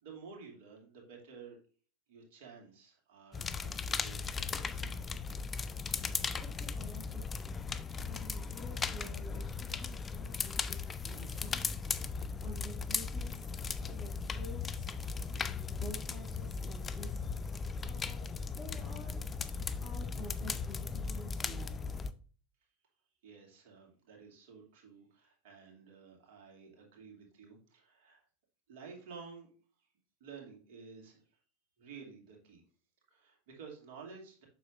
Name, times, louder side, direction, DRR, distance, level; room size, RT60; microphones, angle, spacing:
voice 1, 0.0-1.6 2.1-4.9 23.2-28.2 28.7-29.5 30.2-31.2 31.8-32.6 33.1-34.4, right 5 dB, 55° right, 0 dB, 2.6 m, -52 dB
sound 1, 3.3-22.1, left 5 dB, 20° left, 0.5 m, -37 dB
voice 2, 6.3-7.7 8.0-13.5 13.8-14.9 15.3-18.3 18.6-19.2 19.8-22.0, left 1 dB, ahead, -7 dB, 2.9 m, -51 dB
7.7 x 6.4 x 2.6 m, 0.40 s
figure-of-eight pair, 85°, 0 cm